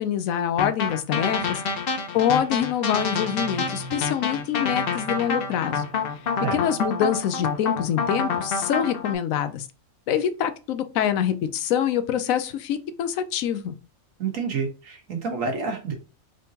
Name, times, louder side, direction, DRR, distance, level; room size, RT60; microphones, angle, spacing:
voice 1, 0.0-1.6 2.1-5.8 6.5-9.7 10.1-13.7, left 9 dB, 85° left, 11 dB, 1.0 m, -25 dB
sound 1, 0.6-9.1, left 4 dB, 55° left, 0.7 m, -27 dB
sound 2, 3.0-7.5, right 1 dB, 30° right, 1.0 m, -44 dB
voice 2, 14.2-15.9, right 5 dB, 75° right, 2 dB, 1.5 m, -29 dB
3.9 x 3.5 x 2.7 m, 0.32 s
omnidirectional pair, 1.4 m